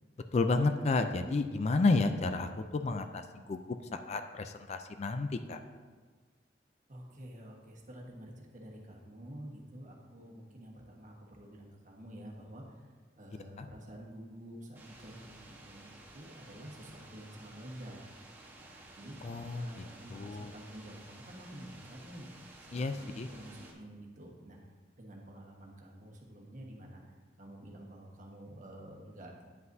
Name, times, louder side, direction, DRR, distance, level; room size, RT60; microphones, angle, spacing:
voice 1, 0.3-3.2 3.5-3.6 3.9-5.6 13.6-13.7 19.2-19.7 20.1-20.5 22.7-23.3, left 3 dB, 40° left, 8 dB, 0.4 m, -31 dB
voice 2, 6.9-12.8 13.2-18.3 18.6-19.3 19.5-22.3 22.6-24.6 25.0-27.0 27.4-29.4, right 1 dB, 45° right, -1 dB, 1.3 m, -49 dB
sound 1, 14.7-23.7, right 2 dB, 10° right, 1.2 m, -54 dB
9.5 x 8.1 x 2.7 m, 1.5 s
head